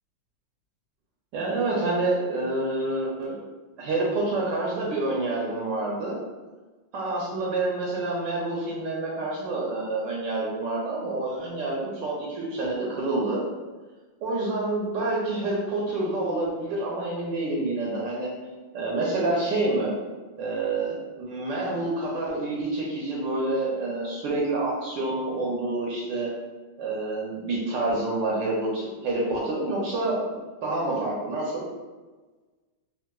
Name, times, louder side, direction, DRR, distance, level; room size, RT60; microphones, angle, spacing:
voice 1, 1.3-3.4 3.8-6.2 6.9-13.5 14.2-18.3 18.7-19.9 20.4-26.3 26.8-30.3 30.6-31.7, right 2 dB, 75° right, -4 dB, 1.2 m, -28 dB
3.6 x 2.4 x 2.2 m, 1.3 s
omnidirectional pair, 2.2 m